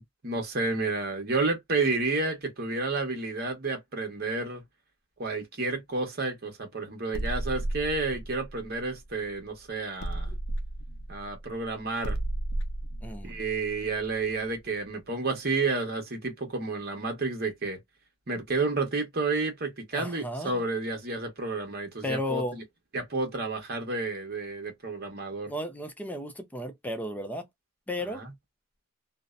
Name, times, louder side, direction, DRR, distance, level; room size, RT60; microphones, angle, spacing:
voice 1, 0.2-4.6 5.2-10.3 11.1-12.2 13.2-17.8 18.3-22.6 22.9-25.5 28.1-28.3, right 3 dB, 45° right, 1.0 m, -30 dB
sound 1, 7.1-9.5 10.0-14.7, right 1 dB, 90° left, 0.6 m, -34 dB
voice 2, 13.0-13.4 19.9-20.6 22.0-22.6 25.5-27.5 27.9-28.2, left 1 dB, 10° left, 0.5 m, -34 dB
2.7 x 2.1 x 2.3 m
head